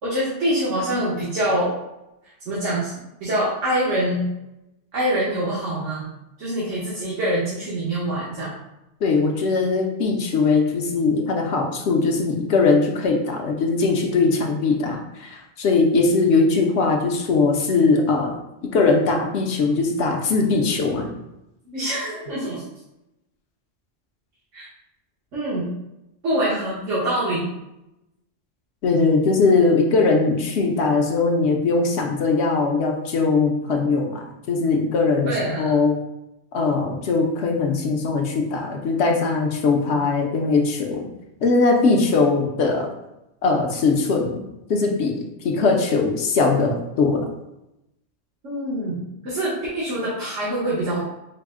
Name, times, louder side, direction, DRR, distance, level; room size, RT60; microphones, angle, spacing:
voice 1, 0.0-1.7 2.5-4.2 4.9-6.0 6.4-8.5 21.7-22.6 24.5-24.7 25.3-25.7 26.2-27.5 35.2-35.7 48.4-51.0, right 1 dB, 80° right, -8 dB, 1.4 m, -25 dB
voice 2, 9.0-18.3 18.7-21.1 28.8-36.0 36.5-41.1 41.4-42.9 43.4-44.4 44.7-45.1 45.4-47.2, left 4 dB, 70° left, 1 dB, 0.9 m, -20 dB
4.7 x 2.1 x 3.5 m, 0.90 s
omnidirectional pair, 1.2 m